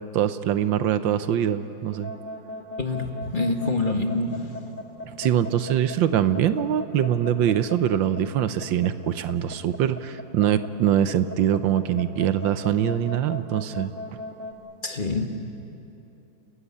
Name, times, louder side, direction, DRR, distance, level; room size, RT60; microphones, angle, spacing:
voice 1, 0.1-2.1 5.2-13.9, right 10 dB, 85° right, 11 dB, 1.6 m, -23 dB
sound 1, 1.9-14.5, left 2 dB, 5° left, 1.2 m, -37 dB
voice 2, 2.8-4.6 14.8-15.3, left 2 dB, 30° left, 4 dB, 1.5 m, -26 dB
30.0 x 16.0 x 9.7 m, 2.9 s
omnidirectional pair, 2.0 m